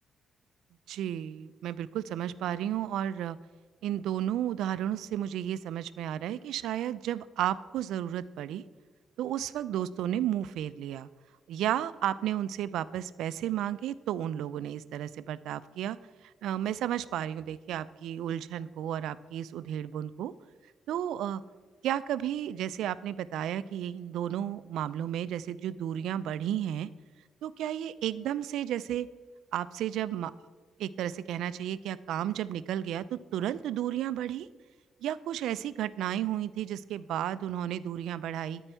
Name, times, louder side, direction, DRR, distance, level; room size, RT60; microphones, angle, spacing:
voice 1, 0.9-3.4 3.8-8.6 9.2-11.1 11.5-16.0 16.4-20.3 20.9-21.4 21.8-26.9 27.4-29.1 29.5-30.3 30.8-34.5 35.0-38.6, right 11 dB, 80° right, 16 dB, 0.3 m, -33 dB
13.0 x 4.5 x 4.4 m, 1.4 s
cardioid pair, 90°, 0 cm